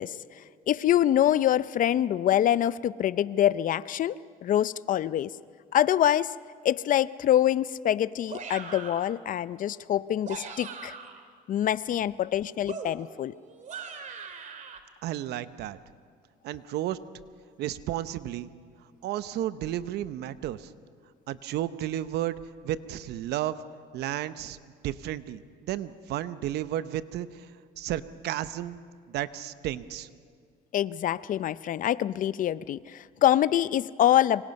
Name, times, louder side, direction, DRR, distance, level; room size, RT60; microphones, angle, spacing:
voice 1, 0.0-5.3 5.7-6.3 6.6-10.9 11.5-13.3 30.7-34.4, left 11 dB, 50° left, 18 dB, 0.5 m, -25 dB
sound 1, 8.3-9.1 10.1-11.3 12.7-14.8, right 5 dB, 45° right, 2.2 m, -41 dB
voice 2, 15.0-15.8 16.4-17.0 17.6-18.5 19.0-20.7 21.3-23.6 23.9-24.6 24.8-27.5 27.8-28.8 29.1-30.1, right 12 dB, 75° right, 13 dB, 0.9 m, -32 dB
27.0 x 25.0 x 5.4 m, 2.1 s
cardioid pair, 110°, 17 cm